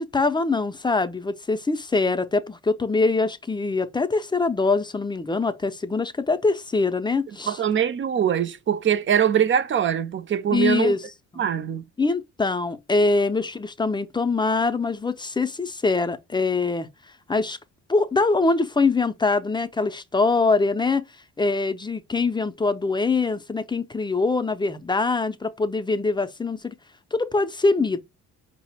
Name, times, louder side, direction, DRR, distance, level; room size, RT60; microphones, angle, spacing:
voice 1, 0.0-7.6 10.5-11.4 12.0-16.9 17.3-17.6 17.9-21.0 21.4-26.7 27.1-28.1, left 3 dB, 15° left, 0.5 m, -23 dB
voice 2, 7.5-11.0 11.4-11.8, right 9 dB, 40° right, 0.5 m, -22 dB
4.8 x 2.1 x 4.3 m
cardioid pair, 90°, 30 cm